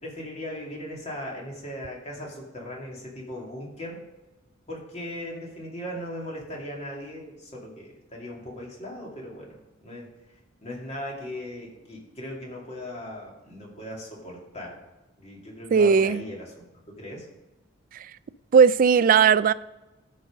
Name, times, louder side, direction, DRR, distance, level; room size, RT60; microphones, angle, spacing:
voice 1, 0.0-4.0 4.7-9.6 9.8-10.1 10.6-14.8 15.2-17.3, left 1 dB, 35° left, 2.6 m, -38 dB
voice 2, 15.7-16.2 18.5-19.5, right 6 dB, 45° right, 0.3 m, -17 dB
13.0 x 5.4 x 5.1 m
head